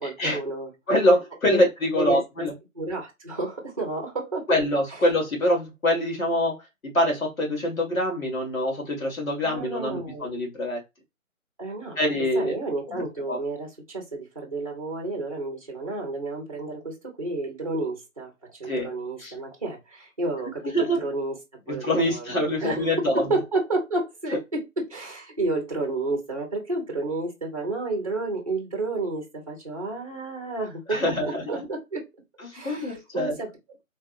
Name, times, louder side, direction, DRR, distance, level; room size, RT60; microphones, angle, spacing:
voice 1, 0.0-0.7 1.5-1.6 1.9-2.5 2.7-4.5 4.9-5.0 9.4-10.3 11.6-12.0 12.3-21.4 21.7-32.1 32.5-33.5, right 2 dB, 25° right, 0.8 m, -31 dB
voice 2, 0.9-2.5 4.5-6.6 6.9-10.8 12.0-12.6 12.9-13.4 18.7-18.9 19.2-19.3 20.7-21.0 21.7-23.3 30.9-31.4 32.6-33.3, left 1 dB, 70° left, 2.1 m, -24 dB
3.4 x 2.8 x 2.6 m
hypercardioid pair, 175°, 42 cm